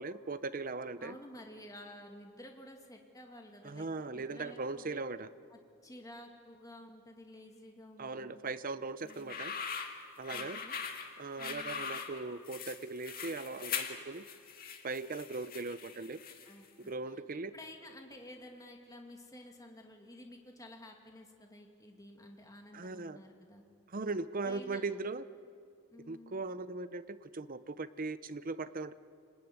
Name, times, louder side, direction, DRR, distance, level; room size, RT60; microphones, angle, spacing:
voice 1, 0.0-1.1 3.6-5.3 8.0-9.5 10.2-10.6 11.2-14.2 14.8-16.2 16.8-17.5 22.7-23.2 23.9-25.2 26.1-28.9, right 3 dB, 40° right, 13 dB, 0.7 m, -39 dB
voice 2, 1.0-3.9 4.1-5.0 5.5-8.5 9.0-9.4 10.3-10.8 11.4-12.0 16.4-17.2 17.5-23.6 24.4-24.8 25.9-26.5, left 1 dB, 15° left, 2 dB, 2.4 m, -52 dB
sound 1, 9.1-16.7, left 6 dB, 40° left, 2.0 m, -41 dB
26.5 x 19.5 x 9.6 m, 2.3 s
head